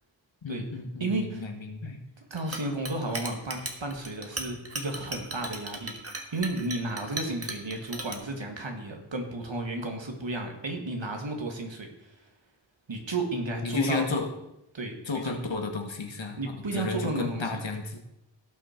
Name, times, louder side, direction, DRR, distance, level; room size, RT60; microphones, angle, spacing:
voice 1, 0.4-2.0 13.6-14.3 15.1-18.0, left 3 dB, 75° left, 4 dB, 1.5 m, -32 dB
voice 2, 1.0-1.5 2.3-6.0 6.3-12.2 12.9-14.1 14.7-15.0 16.4-17.6, right 2 dB, 75° right, 3 dB, 2.0 m, -33 dB
Chink clink, 2.4-8.2, right 2 dB, 30° right, 1.6 m, -37 dB
17.0 x 6.1 x 4.5 m, 0.87 s
wide cardioid pair, 55°, 45 cm